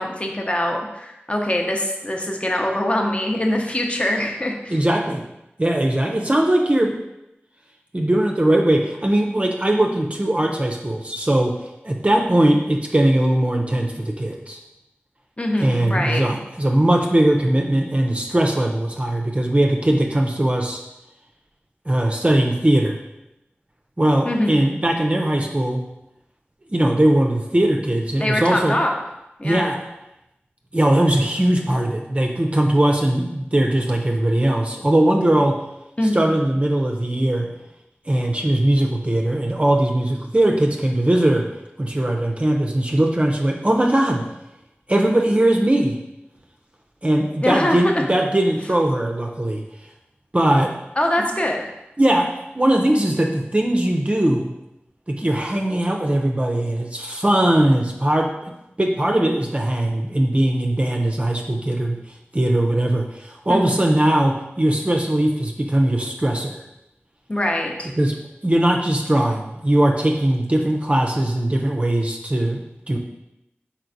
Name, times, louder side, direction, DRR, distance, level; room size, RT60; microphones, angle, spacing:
voice 1, 0.0-4.8 15.4-16.2 24.3-24.7 28.2-29.0 29.4-29.7 36.0-36.5 47.4-47.8 51.0-51.6 63.5-63.9 67.3-67.9, left 1 dB, 30° left, 1 dB, 0.7 m, -23 dB
voice 2, 4.7-5.2 5.6-7.0 7.9-11.6 11.8-14.6 15.6-20.8 21.9-23.0 24.0-25.9 26.7-28.8 29.4-29.8 30.7-35.6 36.1-37.5 38.1-41.5 41.8-44.2 44.9-46.0 47.0-49.6 50.3-50.7 52.0-54.5 55.1-66.6 68.0-68.2 68.4-73.0, right 1 dB, 30° right, 1 dB, 0.5 m, -20 dB
4.4 x 4.2 x 2.6 m, 0.89 s
wide cardioid pair, 45°, 4 cm